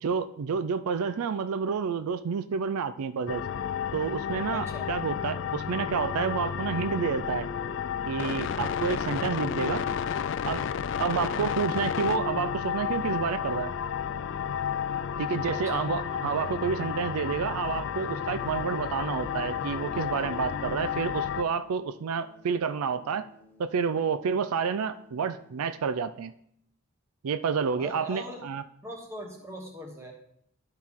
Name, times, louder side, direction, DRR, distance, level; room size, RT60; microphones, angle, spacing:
voice 1, 0.0-3.4 3.9-7.5 8.1-9.8 10.5-10.6 11.0-13.7 15.2-23.3 23.6-26.3 27.2-28.6, right 6 dB, 85° right, 12 dB, 0.4 m, -29 dB
sound 1, 3.3-21.4, left 8 dB, 55° left, 0.3 m, -32 dB
voice 2, 4.5-4.9 11.1-11.4 15.5-15.9 27.7-28.5 28.8-30.1, equal, 10° right, 1 dB, 1.2 m, -41 dB
sound 2, 7.2-15.2, right 1 dB, 70° right, 1.3 m, -50 dB
sound 3, 14.1-26.0, left 4 dB, 10° left, 0.7 m, -54 dB
12.0 x 4.5 x 3.6 m, 0.70 s
head